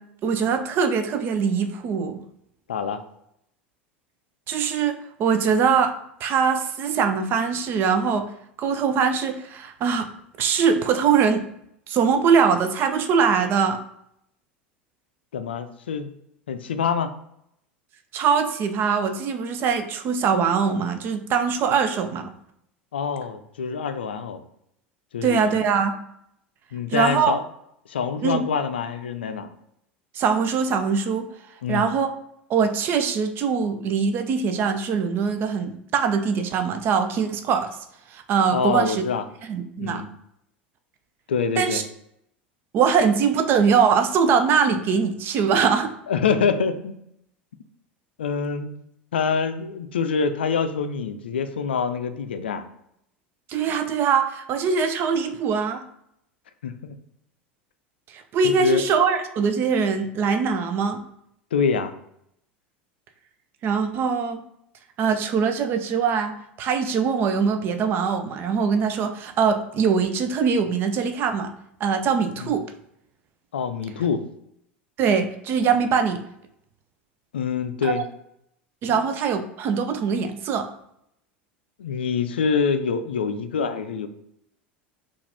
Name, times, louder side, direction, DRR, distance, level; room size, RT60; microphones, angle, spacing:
voice 1, 0.2-2.2 4.5-5.9 6.2-8.3 8.6-10.1 10.4-11.4 11.9-13.8 18.1-22.3 25.2-25.9 26.9-27.4 28.2-28.4 30.1-31.3 31.7-32.1 32.5-37.7 38.1-39.0 39.5-40.0 41.6-41.8 42.7-45.9 53.5-55.8 58.1-61.0 63.6-64.4 65.0-71.5 71.8-72.6 75.0-76.2 77.8-78.0 78.8-80.7, right 6 dB, 40° right, 8 dB, 0.5 m, -22 dB
voice 2, 2.7-3.0 15.3-16.1 16.5-17.1 22.9-24.4 25.1-25.5 26.7-27.4 27.9-29.5 31.6-31.9 38.5-39.2 39.8-40.1 41.3-41.8 46.1-46.9 48.2-48.8 49.1-52.6 56.6-57.0 58.4-58.8 61.5-61.9 72.4-72.5 73.5-74.2 77.3-78.0 78.9-79.0 81.8-84.1, left 6 dB, 70° left, 9 dB, 0.4 m, -25 dB
4.5 x 2.5 x 3.4 m, 0.76 s
figure-of-eight pair, 75°, 6 cm